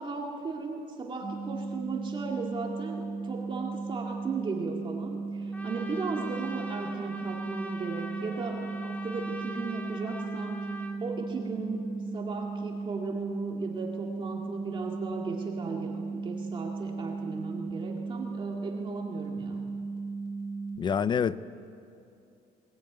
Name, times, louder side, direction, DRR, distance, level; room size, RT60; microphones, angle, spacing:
voice 1, 0.0-11.8 12.1-19.6, right 4 dB, 25° right, 2.1 m, -36 dB
sound 1, 1.2-20.8, right 4 dB, 80° left, 3.5 m, -36 dB
Trumpet, 5.5-11.0, right 1 dB, 10° left, 2.5 m, -43 dB
voice 2, 20.8-21.4, left 7 dB, 25° left, 0.4 m, -26 dB
21.0 x 20.0 x 9.4 m
cardioid pair, 175°, 18 cm